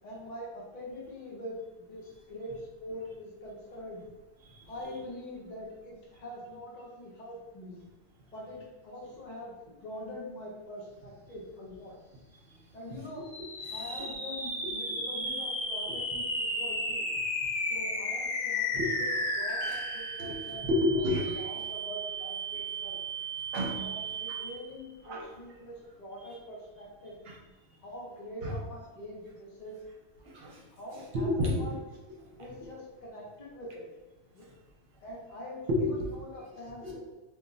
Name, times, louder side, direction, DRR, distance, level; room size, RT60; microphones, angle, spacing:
voice 1, 0.0-4.0 4.7-7.8 8.3-11.9 12.7-13.2 13.7-17.1 17.7-18.6 19.0-20.7 20.9-21.0 21.3-23.0 23.8-27.2 27.8-29.8 30.7-31.7 32.4-33.8 34.3-34.5 35.0-35.7 36.3-37.0, left 1 dB, 50° left, -5 dB, 0.7 m, -44 dB
sound 1, 13.2-24.8, equal, 25° right, 0.5 m, -34 dB
voice 2, 13.6-14.1 14.6-14.7 18.7-18.9 19.6-19.8 20.2-20.3 20.7-21.5 23.5-24.4 25.0-25.3 26.2-26.3 27.2-27.4 28.4-28.6 30.2-30.6 31.1-31.7 32.2-32.7 35.7-36.2 36.8-37.0, left 1 dB, 70° right, -1 dB, 0.8 m, -32 dB
2.2 x 2.1 x 3.6 m, 1.2 s
omnidirectional pair, 1.1 m